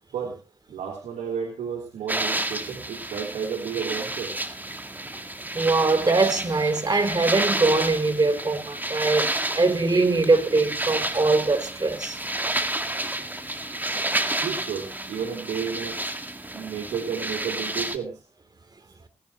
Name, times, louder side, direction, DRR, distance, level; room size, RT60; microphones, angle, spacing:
voice 1, 0.7-4.5 14.4-16.0 16.5-18.2, right 7 dB, 80° right, 3.1 m, -32 dB
sound 1, 2.1-18.0, right 1 dB, 15° right, 1.9 m, -30 dB
voice 2, 5.5-12.2, right 3 dB, 35° right, 3.0 m, -22 dB
19.0 x 10.0 x 3.0 m
hypercardioid pair, 40°, 12 cm